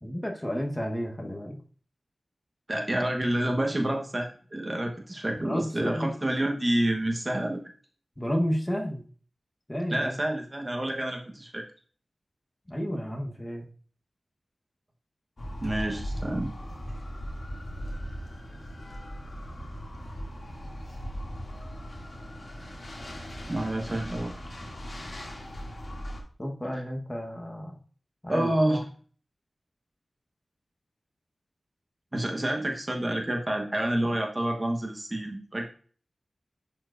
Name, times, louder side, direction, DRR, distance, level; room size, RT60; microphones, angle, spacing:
voice 1, 0.0-1.6 5.4-6.1 8.2-9.0 9.7-10.2 12.7-13.6 26.4-27.8 28.2-28.8, equal, 15° left, 1 dB, 1.1 m, -31 dB
voice 2, 2.7-7.6 9.9-11.6 15.6-16.5 23.5-24.3 26.7-26.8 28.3-28.8 32.1-35.7, right 1 dB, 25° right, 2 dB, 1.0 m, -28 dB
sound 1, 15.4-26.2, equal, 50° left, 2.3 m, -38 dB
11.0 x 4.6 x 2.5 m, 0.43 s
wide cardioid pair, 100°, 0 cm